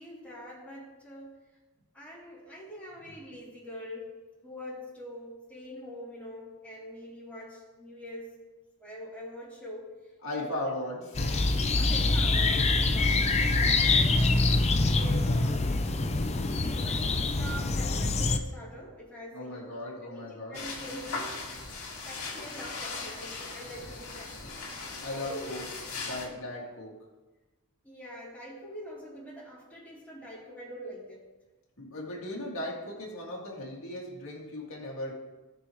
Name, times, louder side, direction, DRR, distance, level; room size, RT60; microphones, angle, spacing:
voice 1, 0.0-1.4 1.9-8.4 8.8-10.0 10.3-10.7 11.2-13.2 13.6-15.7 16.5-21.4 22.0-24.5 25.1-25.7 27.8-31.2, equal, 5° left, -14 dB, 3.3 m, -44 dB
voice 2, 10.2-11.2 19.3-20.7 25.0-25.6 25.9-27.0 31.8-35.1, left 1 dB, 65° left, -4 dB, 2.5 m, -37 dB
sound 1, 11.1-18.4, left 3 dB, 30° left, 0.6 m, -25 dB
sound 2, 20.5-26.3, left 3 dB, 85° left, 2.3 m, -39 dB
17.5 x 6.2 x 3.2 m, 1.1 s
head